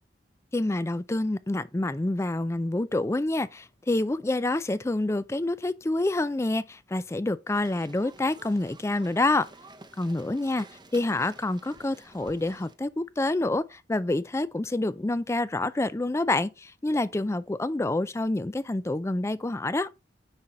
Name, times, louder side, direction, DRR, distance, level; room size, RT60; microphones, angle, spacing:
voice 1, 0.5-9.5 10.0-10.6 10.9-19.9, left 2 dB, 15° left, 0.4 m, -27 dB
sound 1, 7.5-12.7, right 2 dB, 25° right, 0.7 m, -51 dB
9.8 x 3.8 x 4.2 m
head